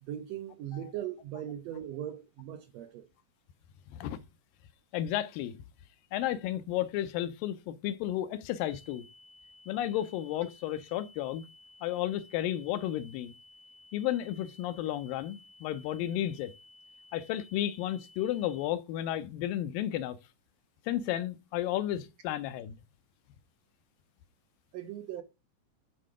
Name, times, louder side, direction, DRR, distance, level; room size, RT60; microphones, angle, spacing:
voice 1, 0.0-3.1 24.7-25.2, right 11 dB, 80° right, 1.5 m, -39 dB
voice 2, 4.9-5.5 6.1-9.0 9.7-11.5 11.8-13.3 13.9-16.5 17.1-20.2 20.9-22.8, left 12 dB, 85° left, 2.4 m, -33 dB
sound 1, 8.7-18.7, left 2 dB, 65° left, 4.0 m, -57 dB
9.7 x 3.7 x 4.8 m
omnidirectional pair, 4.0 m